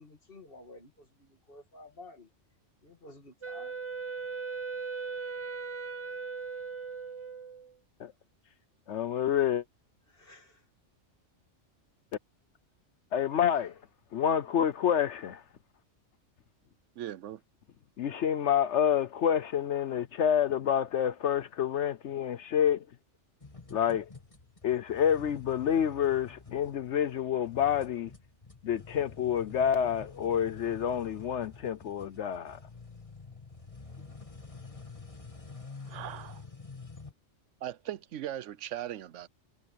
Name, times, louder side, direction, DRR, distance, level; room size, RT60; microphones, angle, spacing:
voice 1, 0.0-2.3 2.8-3.8 10.1-10.6 13.5-13.7, left 2 dB, 45° left, 2.6 m, -52 dB
Wind instrument woodwind instrument, 3.4-7.7, right 5 dB, 30° right, 0.7 m, -38 dB
voice 2, 8.9-9.6 13.1-13.7 14.1-15.4 18.0-22.8 23.7-24.1 24.6-28.1 28.6-32.6, left 9 dB, 70° left, 1.0 m, -28 dB
voice 3, 17.0-17.4 35.9-36.4 37.6-39.3, right 12 dB, 75° right, 0.9 m, -39 dB
sound 1, 23.4-37.1, left 4 dB, 25° left, 2.2 m, -48 dB
omnidirectional pair, 1.3 m